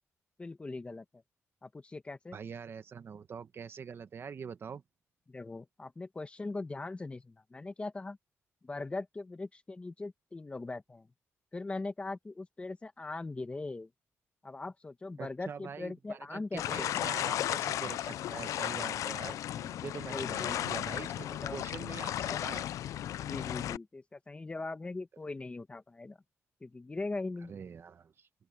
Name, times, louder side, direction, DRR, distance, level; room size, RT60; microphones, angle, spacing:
voice 1, 0.4-1.2 1.6-2.4 5.3-8.2 8.6-11.1 11.5-13.9 14.4-16.9 19.5-20.7 21.4-21.6 22.3-22.4 23.2-26.2 26.6-27.5, left 3 dB, 20° left, 1.6 m, -40 dB
voice 2, 2.3-4.8 15.2-19.4 19.8-22.7 27.5-28.3, right 6 dB, 50° right, 1.3 m, -44 dB
sound 1, 16.6-23.8, left 12 dB, 90° left, 0.4 m, -35 dB
open air
cardioid pair, 120°, 5 cm